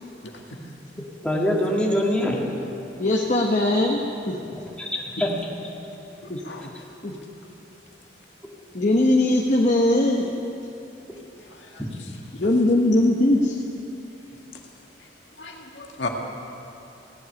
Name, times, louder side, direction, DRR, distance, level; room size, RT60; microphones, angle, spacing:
voice 1, 1.2-2.4 4.5-5.3 11.8-12.0, left 1 dB, 5° left, -3 dB, 2.0 m, -24 dB
voice 2, 3.0-4.0 4.3-4.4 6.3-6.7 7.0-7.1 8.7-10.3 12.3-13.6, left 1 dB, 45° left, -1 dB, 1.2 m, -20 dB
voice 3, 6.2-6.7 11.5-11.8 15.0-15.1 15.4-16.1, left 3 dB, 85° left, 1 dB, 1.8 m, -35 dB
16.5 x 8.1 x 9.8 m, 2.8 s
head